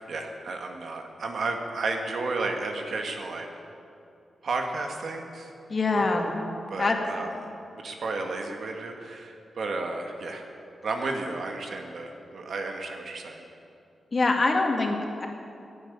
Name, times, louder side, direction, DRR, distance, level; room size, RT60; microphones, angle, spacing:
voice 1, 0.0-3.5 4.4-5.5 5.9-6.3 6.7-7.3 7.7-10.5 10.8-13.5, right 3 dB, 65° right, 3 dB, 1.9 m, -33 dB
voice 2, 5.7-6.4 6.8-7.0 14.1-15.3, left 3 dB, 45° left, 2 dB, 2.2 m, -24 dB
13.5 x 10.0 x 10.0 m, 2.6 s
cardioid pair, 95°, 0 cm